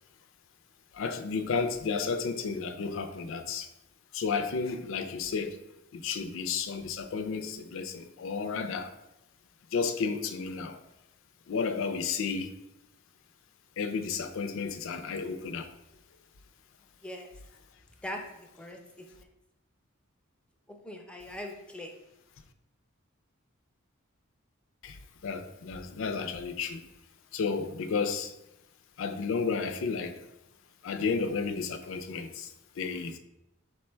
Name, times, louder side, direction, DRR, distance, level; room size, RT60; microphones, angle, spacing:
voice 1, 0.9-3.7 4.1-5.6 5.9-8.9 9.7-10.8 11.5-12.5 13.8-15.7 24.8-25.0 25.2-26.8 27.3-28.3 29.0-30.2 30.8-33.2, left 5 dB, 70° left, 0.4 m, -32 dB
voice 2, 18.0-19.3 20.7-21.9, left 1 dB, 5° left, 0.5 m, -41 dB
4.4 x 2.2 x 4.4 m
head